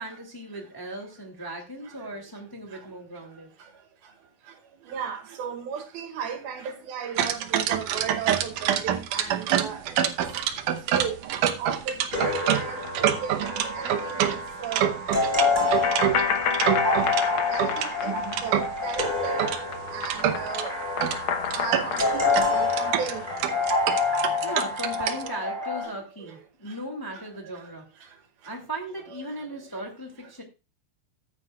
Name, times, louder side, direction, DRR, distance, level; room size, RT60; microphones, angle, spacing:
voice 1, 0.0-3.5 24.4-27.8 28.4-30.4, right 1 dB, 10° left, 1.7 m, -37 dB
voice 2, 4.9-9.9 10.9-11.2 11.6-14.2 14.6-14.9 17.5-18.1 18.4-19.4 19.9-20.7 21.6-22.0 22.5-23.2, right 7 dB, 85° right, 3.8 m, -35 dB
sound 1, 7.2-17.3 17.6-19.6 20.0-20.7 21.0-21.2 21.4-25.3, right 10 dB, 70° right, 2.2 m, -26 dB
sound 2, 12.1-13.8 14.1-14.2 15.8-19.3 19.6-23.8, left 6 dB, 80° left, 1.1 m, -31 dB
sound 3, 12.1-25.8, left 3 dB, 10° right, 5.5 m, -28 dB
14.0 x 9.6 x 2.4 m
omnidirectional pair, 4.1 m